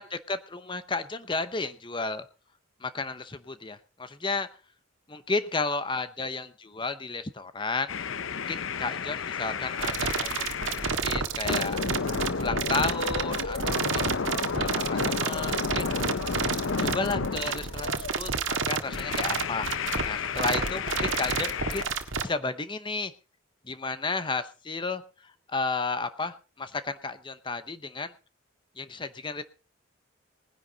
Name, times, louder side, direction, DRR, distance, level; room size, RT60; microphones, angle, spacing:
voice 1, 0.0-2.2 2.8-4.5 5.1-7.9 8.3-10.6 10.8-11.8 12.4-15.9 16.8-21.9 22.2-23.1 23.6-28.1 28.8-29.4, left 3 dB, 25° left, 12 dB, 0.7 m, -33 dB
sound 1, 7.9-11.0 11.4-18.1 18.8-21.8, left 5 dB, 75° left, 0.7 m, -32 dB
sound 2, 9.8-22.2, right 5 dB, 70° right, 1.6 m, -29 dB
19.5 x 10.5 x 4.0 m, 0.33 s
head